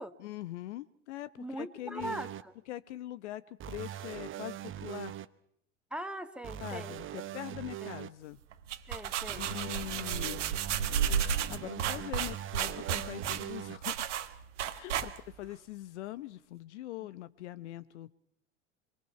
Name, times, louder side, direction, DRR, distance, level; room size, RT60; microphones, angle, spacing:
voice 1, 0.2-2.2 2.7-5.2 6.6-8.4 9.3-10.4 11.5-14.2 14.7-18.1, left 15 dB, 70° left, 15 dB, 0.9 m, -42 dB
voice 2, 1.4-2.5 5.9-7.0 7.8-7.9 8.9-9.4, right 1 dB, 5° right, 8 dB, 1.7 m, -40 dB
sound 1, 2.0-2.4 3.6-5.3 6.4-8.1 9.3-13.8 15.0-15.1, right 11 dB, 35° right, 0.9 m, -42 dB
sound 2, 8.5-15.5, right 8 dB, 75° right, 1.4 m, -33 dB
25.5 x 23.0 x 5.8 m, 0.69 s
hypercardioid pair, 80°, 36 cm